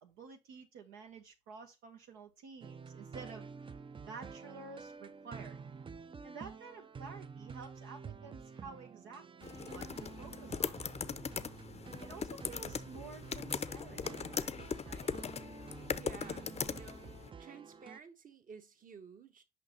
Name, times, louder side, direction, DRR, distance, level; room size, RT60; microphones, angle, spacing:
voice 1, 0.0-3.5 4.1-5.6 6.2-10.8 12.0-14.5 14.8-15.1, right 4 dB, 90° right, 0.9 m, -51 dB
sound 1, 2.6-18.0, right 5 dB, 30° right, 0.4 m, -49 dB
sound 2, 9.4-17.3, left 6 dB, 35° left, 0.5 m, -40 dB
voice 2, 15.9-19.4, right 5 dB, 45° right, 1.2 m, -53 dB
6.4 x 5.2 x 2.9 m
supercardioid pair, 60°, 19 cm